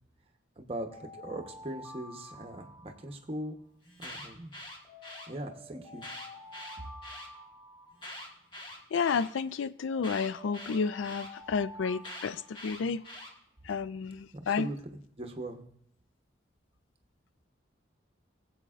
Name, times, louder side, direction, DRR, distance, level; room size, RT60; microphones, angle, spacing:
voice 1, 0.6-3.6 4.0-4.5 5.3-6.1 14.3-15.6, right 1 dB, 30° right, 0.9 m, -40 dB
Alarm, 0.9-3.5 4.8-8.5 9.8-13.1, left 1 dB, 10° left, 5.1 m, -50 dB
Alarm 2, 3.8-5.3 5.9-7.3 7.9-9.3 10.0-11.3 12.0-13.3, left 1 dB, 25° left, 1.4 m, -44 dB
voice 2, 8.9-13.0 13.7-14.7, left 5 dB, 85° left, 0.4 m, -31 dB
20.0 x 7.9 x 2.5 m
head